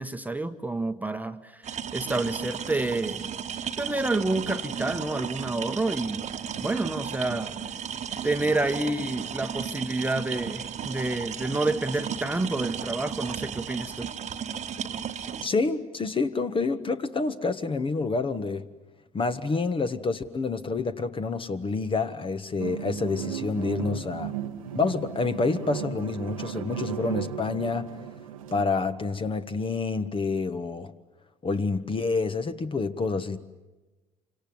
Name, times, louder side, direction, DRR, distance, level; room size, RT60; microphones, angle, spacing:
voice 1, 0.0-3.3 3.8-6.3 6.6-7.6 8.2-14.1, right 2 dB, 10° right, 8 dB, 1.2 m, -29 dB
sound 1, 1.6-15.5, right 8 dB, 40° right, 1.3 m, -34 dB
voice 2, 15.4-18.6 19.1-24.3 24.7-28.0 28.5-30.9 31.4-33.4, left 4 dB, 30° left, 10 dB, 1.5 m, -28 dB
sound 2, 22.6-28.6, right 9 dB, 85° right, 1.1 m, -35 dB
28.0 x 25.5 x 7.9 m, 1.1 s
hypercardioid pair, 55°, 17 cm